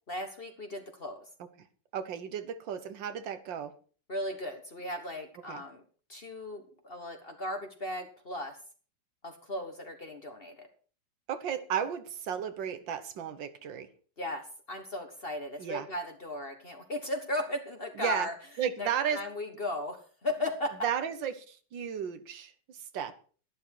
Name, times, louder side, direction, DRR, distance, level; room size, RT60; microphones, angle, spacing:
voice 1, 0.1-1.3 4.1-5.8 6.1-8.6 9.2-10.7 14.2-18.3 18.8-20.7, left 1 dB, 35° left, 5 dB, 1.3 m, -36 dB
voice 2, 1.9-3.7 5.5-5.6 11.3-13.9 15.6-15.9 18.0-18.3 18.6-19.2 20.8-23.1, right 8 dB, 90° right, 10 dB, 1.8 m, -34 dB
11.5 x 11.0 x 4.6 m, 0.41 s
omnidirectional pair, 2.0 m